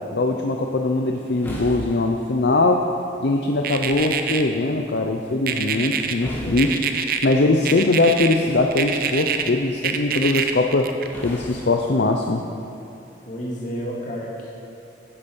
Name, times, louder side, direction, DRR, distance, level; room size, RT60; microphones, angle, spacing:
voice 1, 0.1-2.9 3.2-6.8 7.2-10.9 11.2-12.4, left 2 dB, 60° left, 3 dB, 0.6 m, -21 dB
sound 1, 0.8-12.6, equal, 10° left, 2.1 m, -41 dB
sound 2, 3.6-4.4 5.5-6.1 6.6-7.3 7.6-8.3 8.7-9.5 9.8-11.2, right 8 dB, 55° right, 0.7 m, -25 dB
voice 2, 13.3-14.5, equal, 45° left, -4 dB, 2.4 m, -31 dB
12.0 x 9.7 x 5.5 m, 2.8 s
head